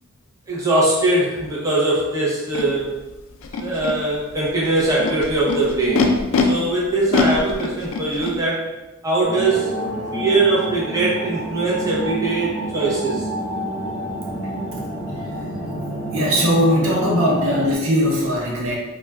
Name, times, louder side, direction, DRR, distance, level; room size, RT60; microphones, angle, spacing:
voice 1, 0.5-2.9 3.6-6.2 6.5-8.7 9.0-9.8 10.1-13.3, right 2 dB, 15° right, -6 dB, 0.6 m, -21 dB
Animal, 2.5-2.6 3.4-3.9 4.8-6.4 7.1-8.3, left 5 dB, 80° left, 0.4 m, -23 dB
sound 1, 9.2-17.7, equal, 20° left, 0.8 m, -28 dB
voice 2, 16.1-18.8, equal, 80° right, -3 dB, 0.7 m, -19 dB
2.3 x 2.2 x 3.3 m, 1.1 s
head